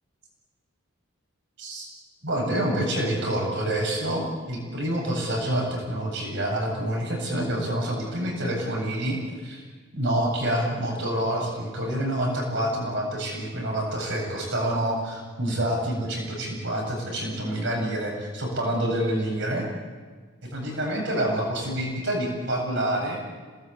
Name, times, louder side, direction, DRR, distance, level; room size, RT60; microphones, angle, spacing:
voice 1, 2.2-9.6 9.9-19.7 20.5-23.2, right 1 dB, 55° right, 0 dB, 7.7 m, -27 dB
27.0 x 19.5 x 8.5 m, 1.5 s
head